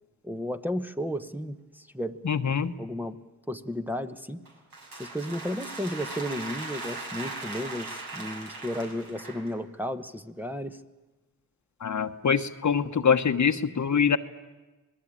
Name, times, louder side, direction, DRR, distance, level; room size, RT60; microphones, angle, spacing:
voice 1, 0.2-2.2 2.8-3.1 3.5-4.4 5.0-10.8, equal, 5° right, 6 dB, 1.1 m, -33 dB
voice 2, 2.2-2.7 11.8-14.2, left 6 dB, 50° left, 9 dB, 1.2 m, -24 dB
sound 1, 4.4-9.6, right 2 dB, 70° right, 5.6 m, -39 dB
26.5 x 19.5 x 8.9 m, 1.2 s
cardioid pair, 75°, 37 cm